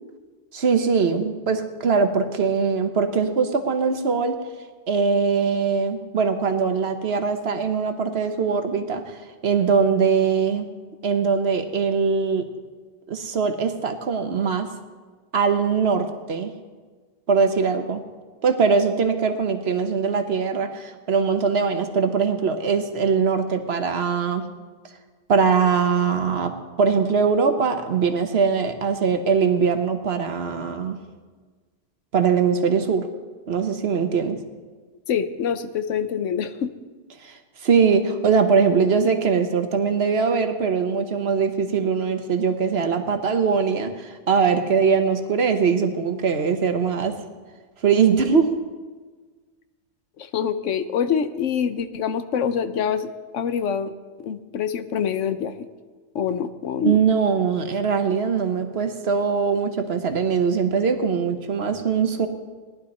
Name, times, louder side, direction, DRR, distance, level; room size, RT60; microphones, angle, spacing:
voice 1, 0.5-4.4 4.9-9.2 9.4-10.7 11.0-12.4 13.1-14.7 15.3-16.5 17.3-18.0 18.4-24.5 25.3-26.5 26.8-31.0 32.1-33.1 33.5-34.4 37.2-47.2 47.8-48.6 56.8-62.3, right 5 dB, 60° right, 7 dB, 1.2 m, -21 dB
voice 2, 35.1-36.7 50.2-53.9 54.2-55.7 56.1-57.0, left 7 dB, 85° left, 11 dB, 1.1 m, -25 dB
18.0 x 11.0 x 4.2 m, 1.4 s
omnidirectional pair, 1.2 m